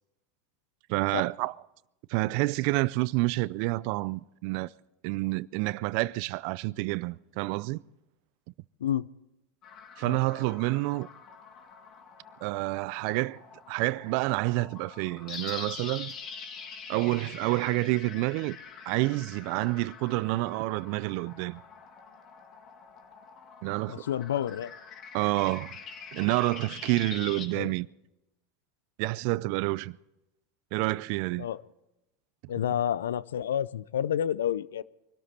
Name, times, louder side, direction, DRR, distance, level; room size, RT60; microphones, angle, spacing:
voice 1, 0.9-1.5 2.1-4.7 5.0-7.8 10.0-11.1 12.4-13.4 13.7-16.1 16.9-18.6 18.9-21.6 23.6-24.1 25.1-25.8 26.1-27.9 29.0-30.0 30.7-31.5, right 21 dB, 60° right, 0.4 m, -28 dB
sound 1, 9.6-27.5, left 6 dB, 45° left, 2.3 m, -45 dB
voice 2, 23.9-24.7 27.5-27.7 31.4-31.6 32.5-34.8, left 10 dB, 85° left, 0.5 m, -29 dB
23.5 x 12.5 x 4.3 m
hypercardioid pair, 95°, 0 cm